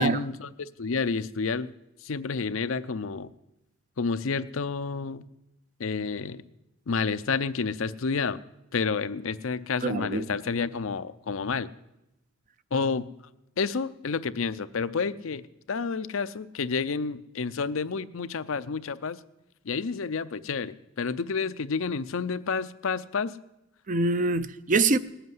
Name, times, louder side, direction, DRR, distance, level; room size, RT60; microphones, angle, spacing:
voice 1, 0.0-1.7 2.0-3.3 4.0-5.3 5.8-6.4 6.9-8.4 8.7-11.7 12.7-13.1 13.6-15.4 15.7-19.2 19.6-23.3, left 5 dB, 70° left, 0.6 m, -30 dB
voice 2, 9.8-10.3 23.9-25.0, right 3 dB, 40° right, 0.5 m, -24 dB
18.5 x 8.0 x 9.5 m
head